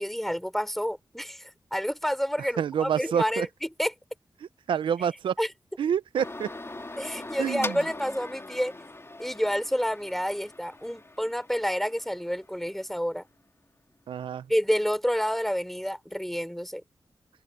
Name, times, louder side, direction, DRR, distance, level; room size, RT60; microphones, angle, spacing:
voice 1, 0.0-3.9 5.4-5.5 7.0-8.7 9.2-13.2 14.5-16.8, equal, 5° left, 3.5 m, -29 dB
voice 2, 2.6-3.5 4.7-5.3 5.8-6.5 7.4-7.8 14.1-14.5, right 8 dB, 90° right, 0.6 m, -27 dB
sound 1, 6.2-12.8, left 2 dB, 30° left, 2.5 m, -41 dB
cardioid pair, 40°, 8 cm